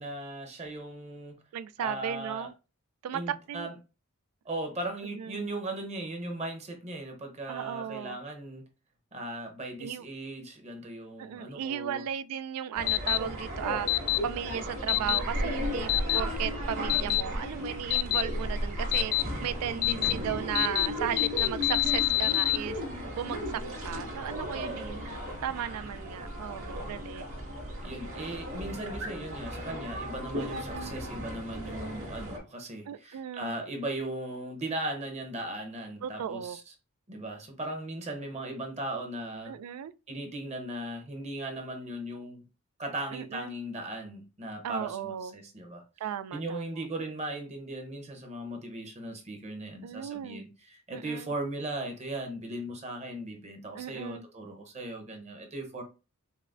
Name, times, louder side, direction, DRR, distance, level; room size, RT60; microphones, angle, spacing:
voice 1, 0.0-1.4 1.8-2.5 3.1-3.7 4.4-8.6 9.1-12.0 19.6-20.1 24.5-25.0 26.7-27.0 27.8-36.6 37.1-39.6 40.1-42.4 42.8-45.8 46.3-55.8, right 1 dB, 30° right, 0.8 m, -38 dB
voice 2, 1.5-2.5 3.0-3.7 5.1-5.4 7.5-8.2 9.8-10.1 11.2-23.4 23.8-27.2 30.4-30.6 32.9-33.6 36.0-36.6 39.5-39.9 43.1-43.5 44.6-45.3 46.0-46.7 49.8-50.4 50.9-51.3 53.7-54.2, right 9 dB, 90° right, 0.3 m, -36 dB
sound 1, 12.7-32.4, equal, 65° right, 1.9 m, -35 dB
sound 2, 12.9-13.2 13.9-14.2 14.9-15.2 15.9-16.2 16.9-17.2 17.9-18.2 18.9-19.2 19.8-20.1 20.5-20.9 21.2-22.6, left 19 dB, 70° left, 0.3 m, -25 dB
5.5 x 2.1 x 2.5 m
head